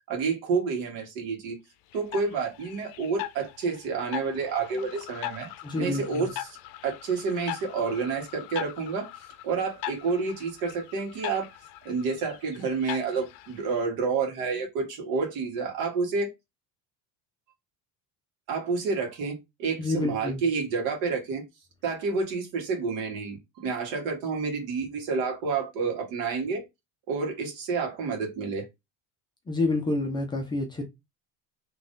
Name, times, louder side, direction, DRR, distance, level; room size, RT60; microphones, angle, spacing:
voice 1, 0.1-1.5 1.9-5.5 5.8-6.3 6.8-9.1 9.4-11.5 11.8-16.3 18.5-21.4 21.8-26.6 27.1-28.6, right 4 dB, 70° right, 1.6 m, -29 dB
sound 1, 1.9-13.8, left 14 dB, 75° left, 0.5 m, -41 dB
voice 2, 5.6-6.3 19.8-20.4 29.5-30.8, left 2 dB, 10° left, 0.4 m, -28 dB
3.0 x 2.6 x 3.7 m
cardioid pair, 180°, 38 cm